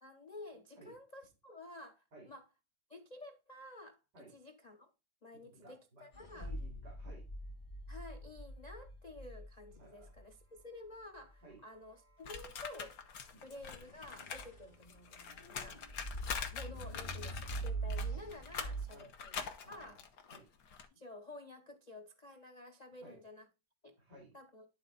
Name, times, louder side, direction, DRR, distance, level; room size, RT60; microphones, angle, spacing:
voice 1, 0.0-2.4 2.9-4.9 5.2-6.5 7.9-13.0 13.4-15.2 15.5-15.8 16.5-20.0 20.9-23.5 23.8-24.0 24.3-24.7, left 2 dB, 90° left, 0.3 m, -52 dB
voice 2, 5.4-6.1 6.4-7.2 9.8-10.1 11.4-11.6 13.3-13.4 15.5-15.8 18.9-19.1 19.6-20.0 20.3-20.5 23.0-23.2 24.0-24.4, right 2 dB, 70° right, 3.7 m, -57 dB
sound 1, 6.1-10.2 13.5-18.8, right 2 dB, 30° left, 2.7 m, -44 dB
sound 2, 12.2-14.5 14.7-20.9, left 6 dB, 60° left, 1.4 m, -44 dB
11.0 x 4.1 x 3.9 m
omnidirectional pair, 1.9 m